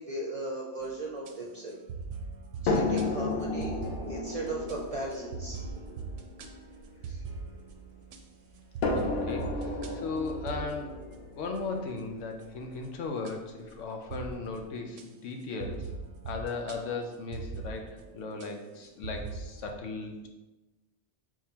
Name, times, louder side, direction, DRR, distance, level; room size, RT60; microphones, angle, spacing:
voice 1, 0.0-1.8 2.6-3.8 4.1-5.6 7.1-7.2, right 2 dB, 40° right, -2 dB, 0.5 m, -37 dB
sound 1, 0.8-1.3 1.7-8.2 8.5-12.0 12.4-12.9 13.2-13.3 14.1-14.7 15.0-15.1 15.6-19.7, right 4 dB, 85° right, 0.9 m, -42 dB
sound 2, 2.7-7.9 8.8-12.8 13.7-13.8 14.3-14.4, left 3 dB, 60° left, 0.7 m, -33 dB
voice 2, 8.9-11.0 11.4-15.9 16.3-20.3, left 4 dB, 85° left, 3 dB, 1.0 m, -37 dB
4.6 x 3.8 x 2.8 m, 1.1 s
omnidirectional pair, 1.2 m